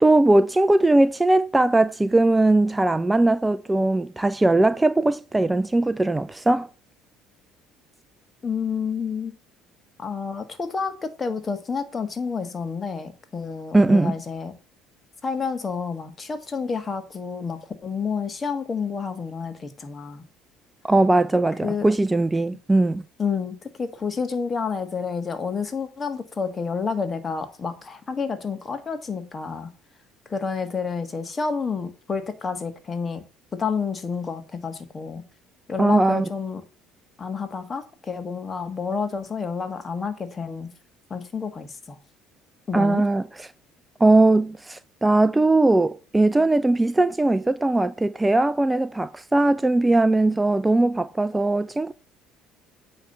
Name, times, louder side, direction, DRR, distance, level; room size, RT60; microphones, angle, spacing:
voice 1, 0.0-6.7 13.7-14.2 20.8-23.0 35.8-36.3 42.7-43.5 44.0-51.9, right 2 dB, 15° right, 0.5 m, -20 dB
voice 2, 8.4-9.3 10.0-14.5 15.2-20.2 21.6-21.9 23.2-29.7 30.3-33.2 33.6-35.2 35.7-36.6 37.2-40.7 41.1-42.0 42.7-43.0, left 5 dB, 30° left, 1.6 m, -29 dB
9.0 x 3.3 x 6.7 m
hypercardioid pair, 60°, 0 cm